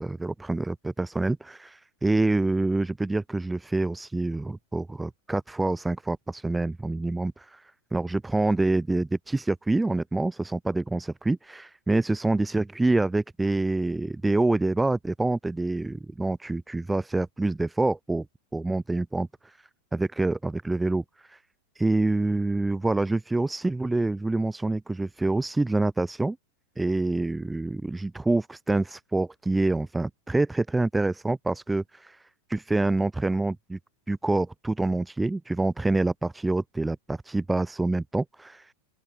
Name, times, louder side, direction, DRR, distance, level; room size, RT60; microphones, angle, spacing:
voice 1, 0.0-18.2 18.5-19.6 19.9-21.4 21.7-26.4 26.8-32.2 32.5-33.8 34.1-38.7, right 2 dB, 5° right, 3.4 m, -26 dB
open air
figure-of-eight pair, 90°, 0 cm